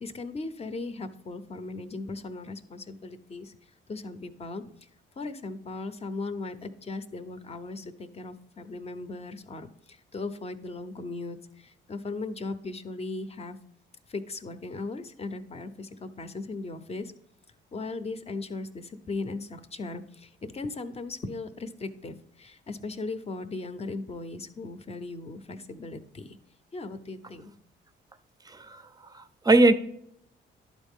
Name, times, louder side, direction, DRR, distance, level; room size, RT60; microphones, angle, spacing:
voice 1, 0.0-3.6 3.9-4.6 5.2-13.6 14.1-17.1 17.7-26.4 26.7-27.5, left 3 dB, 30° left, 10 dB, 0.6 m, -37 dB
voice 2, 28.5-28.8 29.1-29.7, right 2 dB, 20° right, 11 dB, 0.5 m, -21 dB
11.5 x 4.1 x 3.6 m, 0.70 s
cardioid pair, 90°, 20 cm